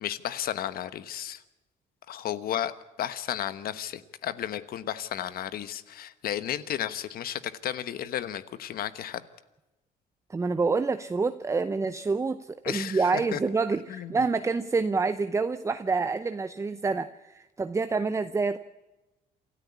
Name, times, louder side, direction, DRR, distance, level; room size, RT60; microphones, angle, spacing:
voice 1, 0.0-1.4 2.1-2.7 3.0-9.2 12.6-13.4 13.9-14.2, left 11 dB, 60° left, 14 dB, 1.2 m, -33 dB
voice 2, 10.3-18.6, right 4 dB, 15° right, 12 dB, 0.7 m, -27 dB
27.5 x 13.5 x 8.5 m, 1.0 s
cardioid pair, 110°, 17 cm